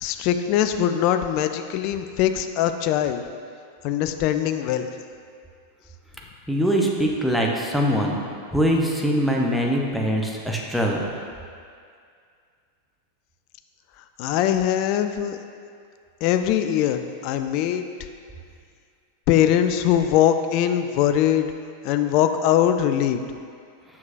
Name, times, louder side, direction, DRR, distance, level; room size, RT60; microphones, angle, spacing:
voice 1, 0.0-3.2 3.8-4.9 14.2-15.4 16.2-17.8 19.3-21.5 21.8-23.2, left 10 dB, 45° left, 8 dB, 0.3 m, -21 dB
voice 2, 6.5-8.2 8.5-11.0, equal, ahead, -2 dB, 0.7 m, -22 dB
7.0 x 6.1 x 2.6 m, 2.2 s
figure-of-eight pair, 90°, 0 cm